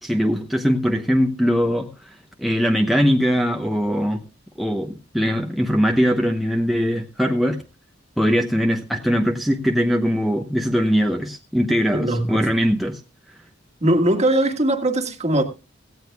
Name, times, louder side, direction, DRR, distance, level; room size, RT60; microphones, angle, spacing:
voice 1, 0.0-1.9 2.4-4.2 4.6-7.6 8.2-13.0, equal, ahead, 0.9 m, -21 dB
voice 2, 11.9-12.5 13.8-15.4, right 1 dB, 35° right, 1.7 m, -20 dB
17.5 x 15.5 x 2.3 m
head